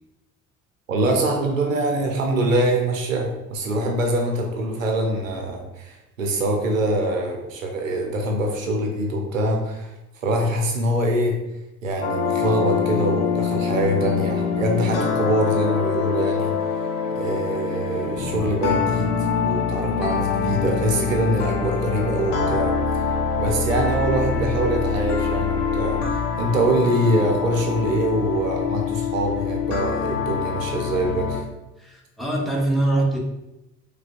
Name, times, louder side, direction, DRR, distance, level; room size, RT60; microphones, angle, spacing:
voice 1, 0.9-11.4 11.8-16.5 17.1-19.1 19.4-22.7 23.4-31.4, right 1 dB, 90° right, 2 dB, 0.5 m, -24 dB
sound 1, 12.0-31.4, left 6 dB, 75° left, 0.6 m, -25 dB
voice 2, 31.8-33.2, right 2 dB, ahead, -2 dB, 0.9 m, -23 dB
4.9 x 2.1 x 2.4 m, 0.94 s
figure-of-eight pair, 50°, 38 cm